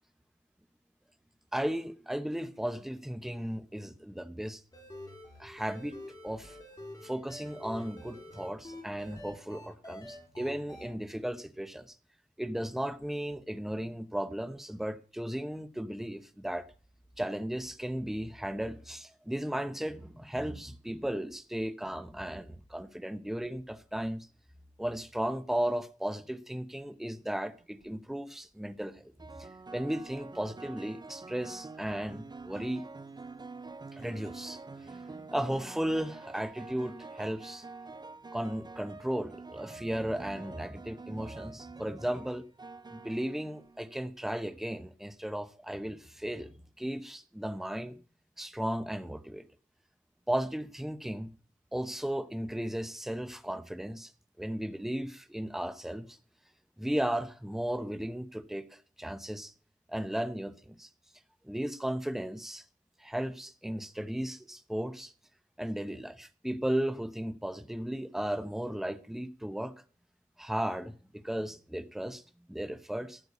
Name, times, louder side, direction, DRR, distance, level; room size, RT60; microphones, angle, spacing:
voice 1, 1.5-4.6 5.4-6.0 6.2-6.6 7.0-11.9 12.4-16.7 17.2-24.3 24.8-29.1 29.4-32.9 33.9-37.6 38.3-42.4 42.9-48.0 48.4-49.4 50.3-51.3 51.7-54.1 54.4-56.2 56.8-59.5 59.9-60.9 61.4-62.6 63.0-65.1 65.6-69.7 70.4-70.9 71.2-72.2 72.5-73.2, right 1 dB, ahead, 0.8 m, -35 dB
sound 1, 4.7-10.9, left 1 dB, 25° left, 4.5 m, -47 dB
sound 2, 27.6-27.9 29.2-44.0, right 3 dB, 30° right, 0.6 m, -47 dB
12.5 x 6.7 x 8.4 m
wide cardioid pair, 85°, 14 cm